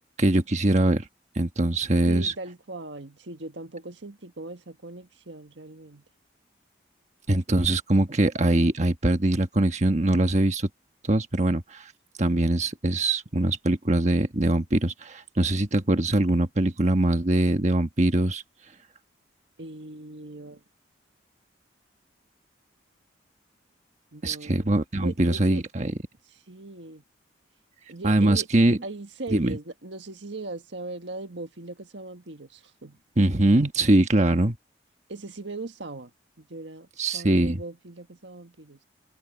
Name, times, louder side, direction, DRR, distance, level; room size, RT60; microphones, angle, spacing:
voice 1, 0.2-1.1 1.3-2.3 7.3-10.7 11.0-11.9 12.2-18.4 24.2-25.9 28.0-28.8 29.3-29.6 33.2-34.6 37.0-37.6, right 1 dB, 40° right, 1.3 m, -22 dB
voice 2, 2.0-6.0 19.6-20.6 24.1-24.6 25.0-25.6 26.5-27.0 27.9-28.5 28.8-33.0 35.1-36.1 36.4-36.9 37.1-38.8, right 2 dB, 75° right, 1.6 m, -39 dB
head